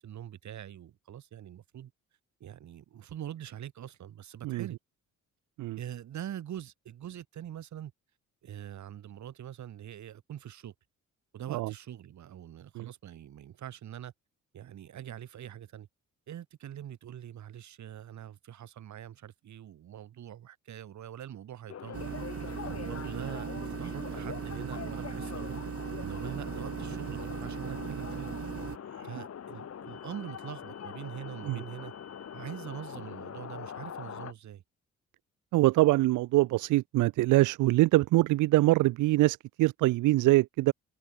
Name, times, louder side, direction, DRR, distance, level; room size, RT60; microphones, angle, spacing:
voice 1, 0.0-1.9 2.4-4.8 5.8-7.9 8.4-10.7 11.3-14.1 14.5-15.9 16.3-22.1 22.6-25.6 26.0-28.3 29.0-31.9 32.3-34.6, right 11 dB, 70° right, 6.0 m, -43 dB
sound 1, 21.7-34.3, left 8 dB, 55° left, 6.7 m, -43 dB
sound 2, 21.9-28.8, right 8 dB, 50° right, 2.2 m, -38 dB
voice 2, 35.5-40.7, right 18 dB, 90° right, 0.8 m, -24 dB
cardioid pair, 90°, 30 cm